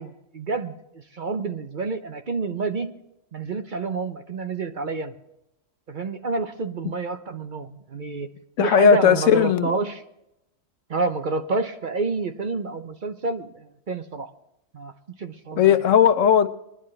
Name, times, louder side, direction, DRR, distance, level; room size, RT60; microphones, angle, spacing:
voice 1, 0.0-3.0 3.3-5.2 5.9-8.3 8.6-10.0 10.9-14.3 14.7-14.9 15.2-15.8, right 3 dB, 45° right, 8 dB, 0.8 m, -29 dB
voice 2, 8.6-9.7 15.6-16.5, left 8 dB, 80° left, 11 dB, 1.1 m, -17 dB
21.0 x 11.0 x 3.2 m, 0.83 s
omnidirectional pair, 1.3 m